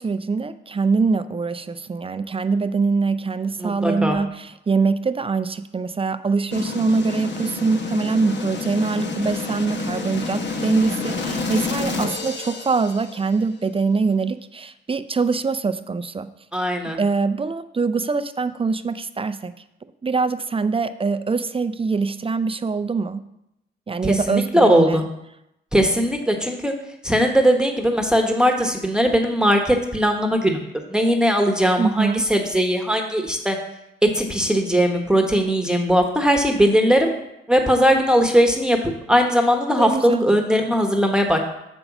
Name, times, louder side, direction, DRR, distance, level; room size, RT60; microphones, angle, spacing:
voice 1, 0.0-16.3 16.5-16.7 17.0-19.5 20.0-23.3 23.9-25.0 31.8-32.3 39.8-40.2, right 4 dB, 25° right, 12 dB, 0.5 m, -23 dB
voice 2, 3.6-4.2 16.5-17.0 24.0-25.0 25.7-26.7 27.0-33.6 34.0-37.1 37.5-38.8 39.1-41.4, equal, 5° right, 3 dB, 1.1 m, -19 dB
sound 1, 6.5-13.4, left 3 dB, 60° left, 1.0 m, -29 dB
6.8 x 5.3 x 6.0 m, 0.86 s
cardioid pair, 60°, 21 cm